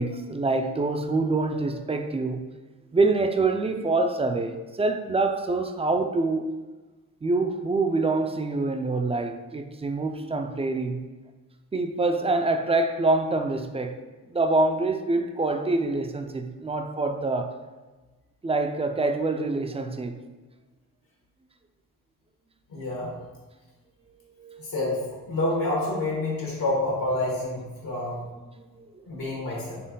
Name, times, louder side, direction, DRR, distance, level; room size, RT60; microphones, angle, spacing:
voice 1, 0.0-2.4 2.9-6.4 7.2-11.0 11.7-14.0 14.3-17.5 18.4-20.2 24.4-24.7 28.8-28.9 29.5-29.6, right 3 dB, 20° right, 7 dB, 0.3 m, -25 dB
voice 2, 22.7-23.1 24.6-28.2 29.1-29.8, left 2 dB, 80° left, -4 dB, 1.4 m, -28 dB
4.3 x 3.2 x 3.7 m, 1.2 s
cardioid pair, 80°, 34 cm